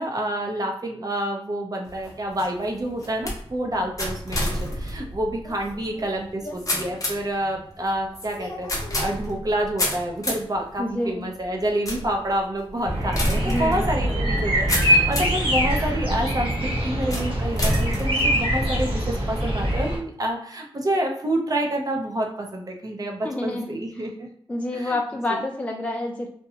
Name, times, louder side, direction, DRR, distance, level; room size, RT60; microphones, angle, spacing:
voice 1, 0.0-4.4 4.7-24.3 24.7-25.0 25.3-25.4, right 1 dB, 40° right, 1 dB, 0.6 m, -28 dB
sound 1, 1.8-15.5 16.0-16.5 17.1-18.9, left 1 dB, 35° left, 0.8 m, -30 dB
voice 2, 10.8-11.3 13.4-14.2 23.2-24.1 24.5-26.3, left 1 dB, 15° left, 1 dB, 0.3 m, -28 dB
sound 2, 12.8-20.0, equal, 65° right, 1.1 m, -23 dB
2.7 x 2.1 x 2.7 m, 0.67 s
wide cardioid pair, 105°, 10 cm